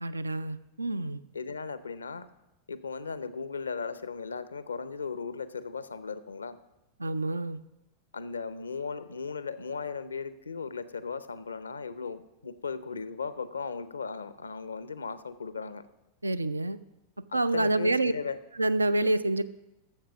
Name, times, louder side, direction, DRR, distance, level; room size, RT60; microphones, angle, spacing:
voice 1, 0.0-1.2 7.0-7.6 16.2-16.8 17.3-18.1 18.6-19.4, right 2 dB, 80° right, 15 dB, 0.4 m, -27 dB
voice 2, 1.3-2.3 2.7-6.6 8.1-15.8 17.3-18.4, left 5 dB, 75° left, 14 dB, 0.6 m, -37 dB
12.0 x 7.5 x 5.9 m, 0.97 s
figure-of-eight pair, 90°, 0 cm